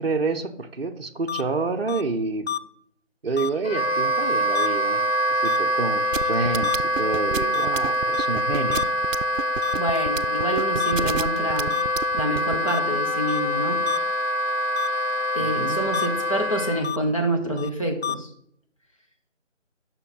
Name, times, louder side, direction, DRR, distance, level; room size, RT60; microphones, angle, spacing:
voice 1, 0.0-2.5 3.2-5.0 5.3-8.8 15.4-15.8, right 3 dB, 50° right, 4 dB, 0.7 m, -28 dB
sound 1, 1.3-1.4 1.9-2.0 2.5-2.6 3.4-3.5 4.5-4.7 5.4-5.6 6.2-6.3 6.6-6.7 7.5-7.7 8.1-8.3 8.7-8.8 9.6-9.7 10.8-10.9 11.7-11.8 12.7-12.8 13.3-13.4 13.9-14.0 14.8-14.9 15.9-16.1 16.8-17.0 17.6-17.7 18.0-18.1, left 9 dB, 60° left, 0.5 m, -28 dB
Wind instrument woodwind instrument, 3.6-16.8, equal, 85° left, 0.9 m, -25 dB
sound 2, 6.1-12.6, right 6 dB, 85° right, 0.5 m, -29 dB
voice 2, 9.8-11.7 12.1-13.8 15.3-18.3, right 1 dB, 25° left, 0 dB, 1.0 m, -27 dB
8.8 x 6.2 x 4.0 m, 0.67 s
figure-of-eight pair, 165°, 38 cm